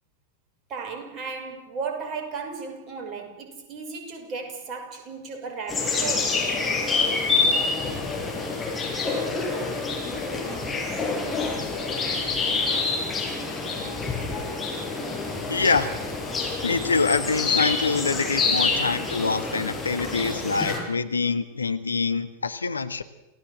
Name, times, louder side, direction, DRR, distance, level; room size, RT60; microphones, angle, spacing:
voice 1, 0.7-6.5, right 5 dB, 35° right, 4 dB, 6.1 m, -35 dB
sound 1, 5.7-20.8, left 4 dB, 15° left, 6.9 m, -27 dB
voice 2, 15.5-15.9 16.6-23.0, left 4 dB, 75° left, 10 dB, 1.5 m, -25 dB
28.0 x 17.5 x 7.6 m, 0.95 s
figure-of-eight pair, 90°, 0 cm